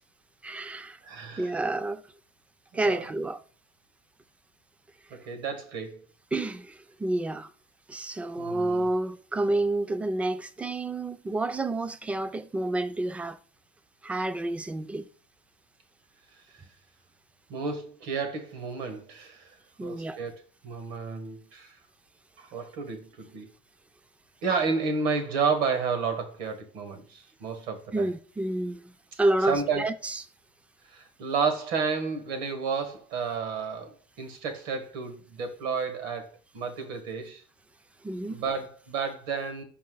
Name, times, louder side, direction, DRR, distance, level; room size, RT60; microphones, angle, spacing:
voice 1, 0.4-1.0 1.4-2.0 2.7-3.4 6.3-7.5 7.9-13.4 14.0-15.1 19.8-20.2 27.9-28.9 29.2-30.2 38.0-38.4, right 2 dB, 10° right, 0.3 m, -29 dB
voice 2, 1.0-1.5 2.8-3.1 5.1-6.0 8.4-8.9 17.5-21.7 22.4-23.5 24.4-28.1 29.5-29.9 30.9-37.4 38.3-39.6, right 5 dB, 75° right, 1.5 m, -31 dB
5.8 x 4.3 x 3.8 m
cardioid pair, 150°, 14 cm